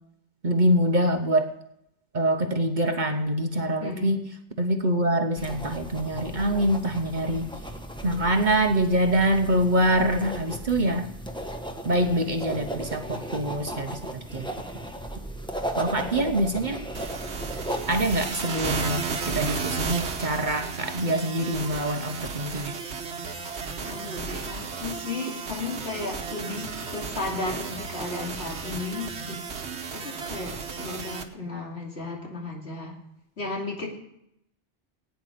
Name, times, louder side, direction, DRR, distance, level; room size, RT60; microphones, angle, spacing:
voice 1, 0.4-1.5 2.1-4.3 4.6-7.5 8.0-11.1 11.8-14.0 14.3-14.5 15.8-16.8 17.9-22.8, right 1 dB, 45° right, 6 dB, 1.0 m, -25 dB
voice 2, 3.8-4.2 12.0-12.3 15.9-16.4 23.8-29.4 29.9-33.0 33.4-33.9, left 3 dB, 65° left, -2 dB, 3.0 m, -34 dB
sound 1, 5.4-18.3, right 1 dB, 5° left, 1.1 m, -36 dB
sound 2, 16.9-31.2, right 5 dB, 65° right, 1.4 m, -34 dB
16.0 x 9.3 x 5.0 m, 0.79 s
omnidirectional pair, 1.2 m